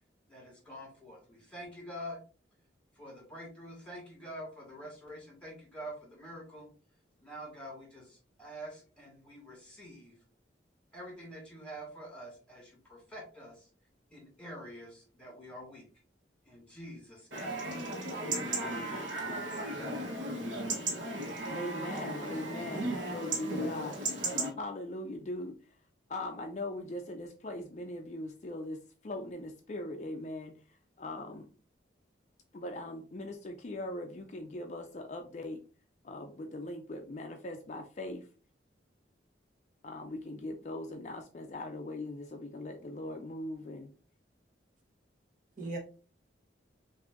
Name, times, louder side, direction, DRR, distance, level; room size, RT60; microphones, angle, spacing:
voice 1, 0.3-2.2 2.9-6.7 7.2-10.1 10.9-13.7 14.1-15.9 16.4-17.6 18.3-18.7 19.6-19.7, equal, 5° left, 2.0 m, -46 dB
Chatter / Livestock farm animals working animals / Chirp tweet, 17.3-24.5, right 2 dB, 80° right, 1.1 m, -36 dB
voice 2, 21.5-24.0 24.6-25.5 26.1-30.6 31.0-31.5 32.5-35.6 36.0-38.3 39.8-43.9, left 1 dB, 40° left, 0.4 m, -40 dB
voice 3, 22.7-23.2 45.6-45.8, right 2 dB, 45° right, 1.0 m, -36 dB
5.8 x 2.6 x 2.5 m
head